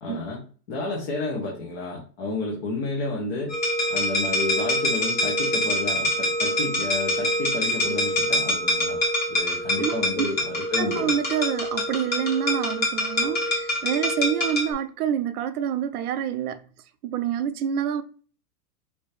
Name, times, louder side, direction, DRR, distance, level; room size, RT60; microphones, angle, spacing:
voice 1, 0.0-3.6 3.9-9.0 9.3-11.1, left 3 dB, 40° left, 1.4 m, -31 dB
sound 1, 3.5-14.7, left 1 dB, 20° left, 1.3 m, -25 dB
voice 2, 9.8-10.3 10.8-16.6 17.0-18.0, right 9 dB, 65° right, 0.7 m, -27 dB
5.2 x 2.9 x 3.4 m
supercardioid pair, 155°, 48 cm